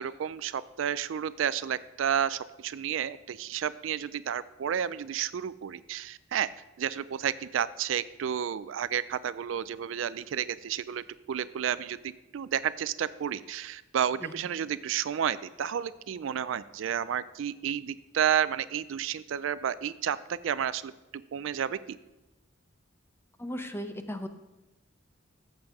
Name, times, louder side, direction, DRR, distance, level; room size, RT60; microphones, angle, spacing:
voice 1, 0.0-6.5 6.8-12.0 12.3-20.9 21.3-22.0, right 9 dB, 75° right, 16 dB, 0.4 m, -31 dB
voice 2, 23.4-24.3, equal, 10° left, 7 dB, 0.7 m, -36 dB
14.0 x 7.4 x 3.6 m, 1.0 s
head